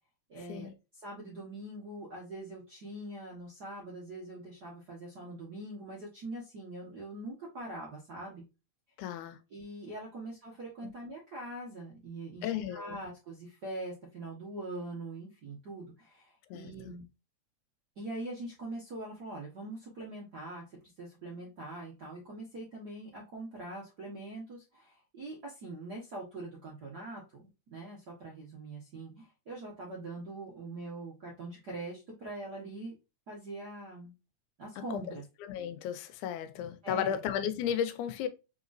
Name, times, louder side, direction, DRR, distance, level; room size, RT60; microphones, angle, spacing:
voice 1, 0.3-8.4 9.5-17.0 18.0-32.9 33.3-34.1 34.6-35.2 36.8-37.2, right 2 dB, 65° right, 0.9 m, -43 dB
voice 2, 9.0-9.4 10.8-10.9 12.4-13.0 16.5-16.7 34.8-38.3, left 9 dB, 85° left, 2.0 m, -34 dB
4.4 x 3.9 x 2.5 m
omnidirectional pair, 3.5 m